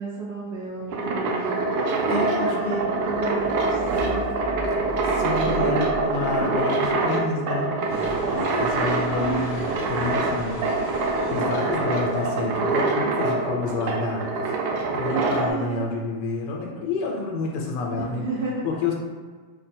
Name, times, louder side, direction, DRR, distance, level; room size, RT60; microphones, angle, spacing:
voice 1, 0.0-1.7 2.4-4.3 8.3-9.7 15.1-15.8 17.9-18.6, right 3 dB, 90° right, -5 dB, 0.5 m, -32 dB
sound 1, 0.7-15.5, right 3 dB, 70° right, 1.0 m, -25 dB
voice 2, 2.1-2.8 5.0-7.8 8.6-10.6 11.3-14.5 14.9-18.3 18.6-18.9, left 4 dB, 85° left, 0 dB, 1.2 m, -29 dB
sound 2, 2.7-6.9, equal, 5° right, 1.0 m, -38 dB
sound 3, 7.9-13.0, left 1 dB, 30° left, 0.9 m, -37 dB
3.1 x 2.2 x 4.1 m, 1.5 s
omnidirectional pair, 1.9 m